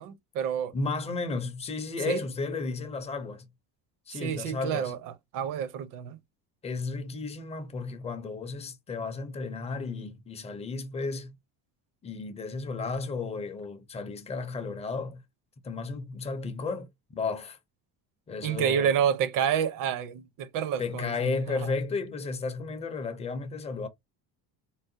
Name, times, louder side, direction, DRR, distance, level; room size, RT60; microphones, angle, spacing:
voice 1, 0.0-0.7 2.1-2.2 4.1-5.0 5.3-6.2 18.4-21.1 21.5-21.7, right 8 dB, 55° right, 0.7 m, -28 dB
voice 2, 0.7-3.4 4.1-4.9 6.6-11.4 12.0-15.2 15.6-17.6 18.3-18.9 20.8-23.9, left 4 dB, 15° left, 0.5 m, -33 dB
3.8 x 2.1 x 2.6 m
cardioid pair, 155°, 38 cm